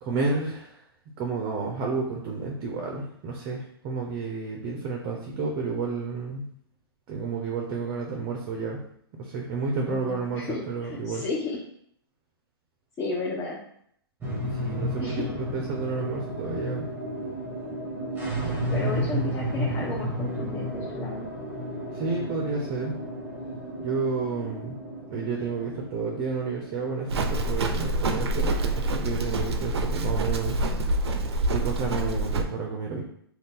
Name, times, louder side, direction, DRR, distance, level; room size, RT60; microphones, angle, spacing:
voice 1, 0.0-0.8 1.2-6.5 7.1-8.8 9.1-11.2 14.5-16.9 21.9-22.9 23.8-24.8 25.1-30.6 31.5-33.0, right 4 dB, 35° right, 0 dB, 0.5 m, -31 dB
voice 2, 9.8-11.6 13.0-13.6 15.0-15.4 18.7-21.3, left 3 dB, 25° left, -6 dB, 0.6 m, -33 dB
sound 1, 14.2-28.8, equal, 15° right, 0.9 m, -33 dB
Livestock farm animals working animals, 27.1-32.4, right 2 dB, 80° right, 0.4 m, -26 dB
2.6 x 2.3 x 3.6 m, 0.68 s
hypercardioid pair, 125°, 13 cm